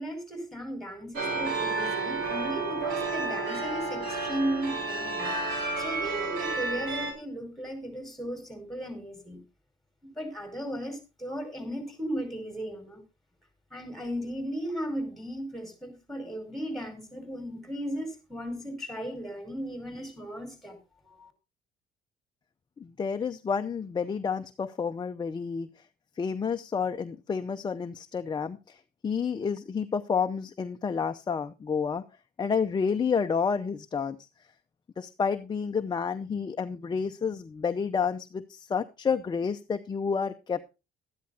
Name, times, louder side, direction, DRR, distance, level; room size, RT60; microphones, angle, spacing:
voice 1, 0.0-5.4 5.8-9.4 10.0-13.0 13.7-20.8 21.0-21.3, equal, ahead, 6 dB, 5.2 m, -36 dB
sound 1, 1.2-7.1, right 3 dB, 85° right, 5.2 m, -31 dB
voice 2, 22.8-25.7 26.2-28.8 29.0-32.0 32.4-34.2 35.0-40.7, left 6 dB, 25° left, 7 dB, 0.7 m, -30 dB
13.0 x 10.0 x 4.0 m, 0.29 s
cardioid pair, 110°, 17 cm